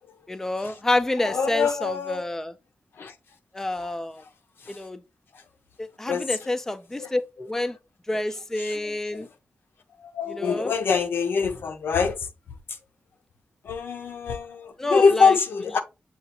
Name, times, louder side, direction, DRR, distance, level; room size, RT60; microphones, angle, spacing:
voice 1, 0.3-2.5 3.5-4.2 4.7-5.0 5.8-7.8 8.1-9.3 10.3-10.7 14.8-15.4, left 2 dB, 10° left, 0.3 m, -28 dB
voice 2, 1.2-2.3 3.0-3.1 4.6-4.8 6.0-6.6 7.0-7.1 8.6-9.3 10.0-12.3 13.6-15.8, left 5 dB, 85° left, 0.6 m, -24 dB
6.7 x 2.4 x 2.8 m
wide cardioid pair, 135°, 4 cm